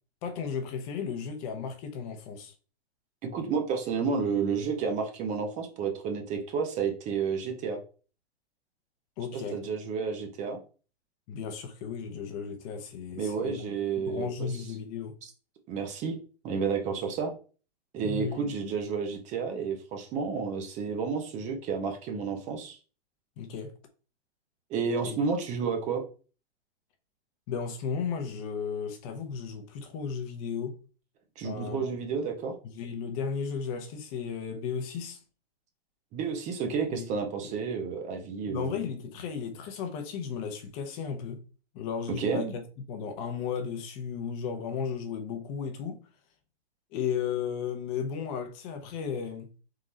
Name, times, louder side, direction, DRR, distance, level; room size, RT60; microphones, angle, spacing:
voice 1, 0.2-2.5 9.2-9.6 11.3-13.6 14.0-15.1 18.0-18.5 23.4-23.7 25.0-25.2 27.5-30.8 31.4-31.9 32.6-35.2 36.9-37.2 37.4-37.5 38.5-41.4 41.7-42.6 42.9-46.0 46.9-49.5, left 6 dB, 35° left, 0.8 m, -34 dB
voice 2, 3.2-7.8 9.5-10.6 13.2-14.3 15.7-16.2 16.4-17.3 17.9-22.8 24.7-26.0 31.4-32.6 36.1-38.8 42.2-42.5, right 5 dB, 20° right, 0.7 m, -31 dB
3.8 x 3.0 x 3.9 m
hypercardioid pair, 140°, 33 cm